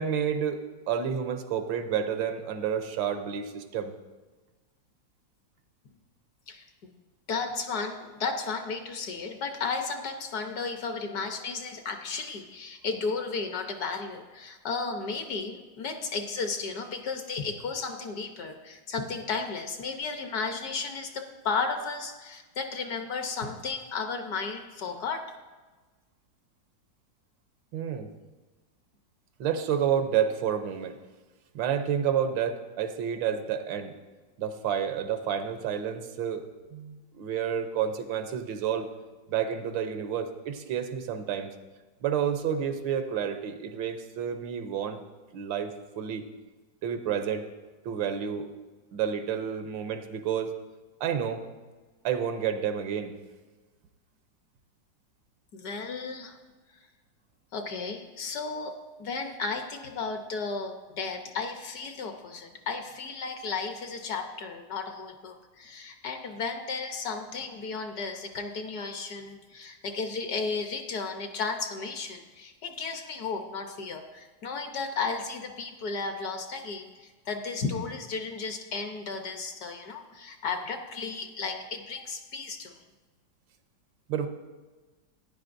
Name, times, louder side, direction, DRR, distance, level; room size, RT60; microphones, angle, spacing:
voice 1, 0.0-3.9 27.7-28.1 29.4-31.0 31.5-33.9 34.4-38.9 39.3-41.5 42.0-45.0 45.3-46.2 46.8-47.5 47.8-48.5 48.9-50.5 51.0-51.4 52.0-53.2 84.1-84.3, right 8 dB, 85° right, 8 dB, 1.5 m, -30 dB
voice 2, 7.3-25.3 55.5-56.4 57.5-58.7 59.0-82.7, left 4 dB, 60° left, 5 dB, 1.2 m, -34 dB
14.5 x 9.9 x 2.6 m, 1.3 s
omnidirectional pair, 2.0 m